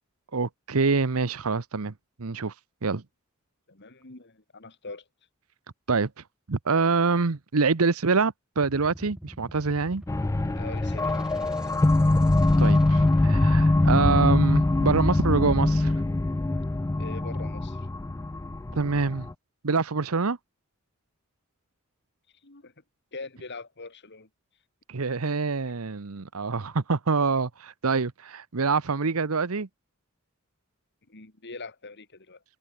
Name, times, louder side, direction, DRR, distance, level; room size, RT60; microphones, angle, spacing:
voice 1, 0.3-1.9 2.2-2.5 2.8-3.0 5.9-6.1 6.5-10.0 12.6-15.9 18.7-19.3 19.6-20.4 24.9-29.7, right 4 dB, 75° right, 0.9 m, -25 dB
voice 2, 3.7-5.1 10.5-11.7 17.0-17.9 22.4-22.7 23.1-24.3 31.1-32.4, left 3 dB, 55° left, 2.8 m, -43 dB
sound 1, 8.6-15.5, equal, 5° right, 4.3 m, -43 dB
sound 2, 10.1-19.3, left 2 dB, 15° left, 0.3 m, -23 dB
head